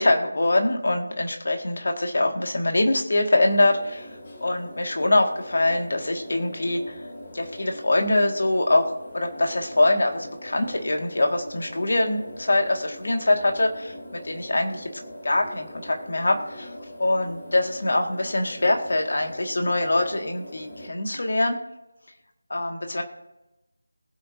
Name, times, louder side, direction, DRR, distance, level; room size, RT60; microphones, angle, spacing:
voice 1, 0.0-4.1 4.4-7.0 7.3-14.9 15.2-16.7 17.0-21.6 22.5-23.0, left 2 dB, 55° left, 3 dB, 2.0 m, -23 dB
sound 1, 3.5-20.9, left 1 dB, 35° left, 2.2 m, -42 dB
21.0 x 7.8 x 2.8 m, 0.97 s
figure-of-eight pair, 165°, 0 cm